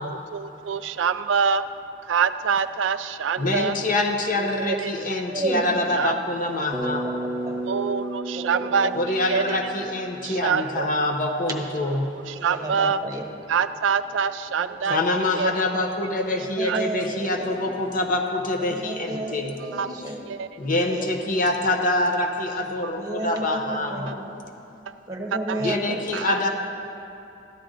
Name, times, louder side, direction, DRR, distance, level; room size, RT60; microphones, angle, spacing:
voice 1, 0.0-1.7 2.0-3.8 4.6-4.9 5.9-6.1 7.7-9.6 10.2-10.9 12.3-13.0 13.5-15.0 15.3-15.6 16.6-16.8 19.7-19.9 20.3-20.5 22.8-22.9 23.3-23.4 24.9-25.0 25.5-25.7 26.1-26.4, right 6 dB, 90° right, 12 dB, 0.4 m, -25 dB
voice 2, 3.4-7.0 8.9-12.1 14.9-19.5 20.6-24.1 25.6-26.5, left 2 dB, 45° left, 3 dB, 0.8 m, -25 dB
voice 3, 5.3-5.8 6.9-7.7 8.3-9.0 12.3-13.2 14.6-15.0 16.3-17.6 18.6-20.2 20.8-21.1 21.3-21.4 23.0-24.4 25.1-26.0, right 1 dB, 20° right, 0 dB, 1.2 m, -32 dB
Bass guitar, 6.7-10.8, right 1 dB, ahead, 1.0 m, -33 dB
13.5 x 10.5 x 3.8 m, 2.9 s
head